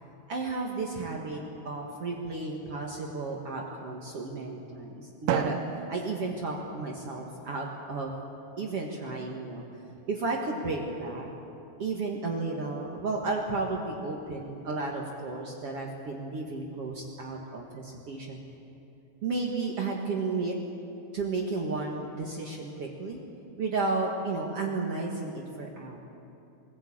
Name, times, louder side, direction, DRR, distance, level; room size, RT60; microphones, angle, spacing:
voice 1, 0.3-5.6 5.9-8.1 8.6-9.6 10.1-11.3 11.8-18.4 19.2-20.6 21.1-23.2 23.6-26.0, right 3 dB, 50° right, -1 dB, 2.4 m, -33 dB
Drum, 5.3-7.3, right 10 dB, 80° right, 2.4 m, -34 dB
24.0 x 17.0 x 8.7 m, 2.8 s
omnidirectional pair, 3.8 m